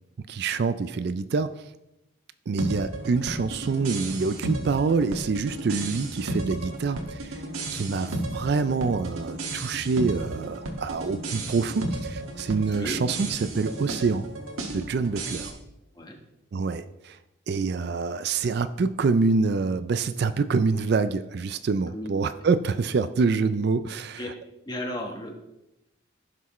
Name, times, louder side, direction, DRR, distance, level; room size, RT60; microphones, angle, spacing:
voice 1, 0.3-1.5 2.5-7.4 7.7-14.2 14.7-15.5 16.5-17.2 17.5-24.2, right 4 dB, 50° right, 12 dB, 0.3 m, -26 dB
sound 1, 2.6-15.5, right 2 dB, 90° right, 1.6 m, -34 dB
voice 2, 12.7-13.0 15.9-16.2 21.9-22.1 24.2-24.3 24.7-25.4, left 1 dB, 20° left, 2 dB, 1.2 m, -34 dB
15.5 x 6.0 x 3.1 m, 0.92 s
head